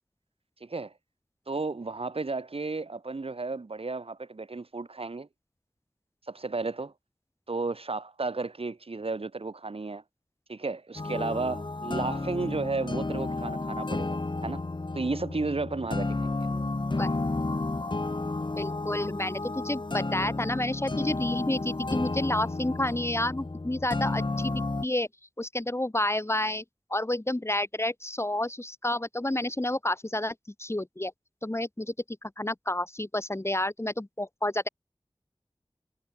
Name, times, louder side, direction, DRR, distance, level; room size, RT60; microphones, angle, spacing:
voice 1, 0.6-0.9 1.5-5.3 6.3-6.9 7.5-10.0 10.5-14.2 14.4-14.6 14.9-16.4, right 3 dB, 80° right, 3.9 m, -33 dB
sound 1, 11.0-24.9, left 2 dB, 55° left, 2.0 m, -32 dB
voice 2, 18.6-25.1 25.4-26.6 26.9-30.3 30.6-31.1 31.4-31.9 32.2-34.7, left 1 dB, 30° left, 1.9 m, -30 dB
wide cardioid pair, 40°, 10 cm